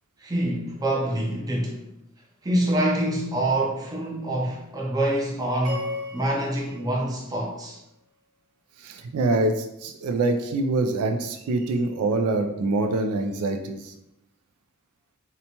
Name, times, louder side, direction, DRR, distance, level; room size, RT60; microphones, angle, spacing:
voice 1, 0.2-1.8 2.4-7.8, right 1 dB, 15° right, 0.5 m, -26 dB
sound 1, 5.6-8.0, left 2 dB, 65° right, 1.1 m, -37 dB
voice 2, 8.8-13.9, right 2 dB, 90° right, 0.3 m, -25 dB
2.8 x 2.1 x 2.8 m
head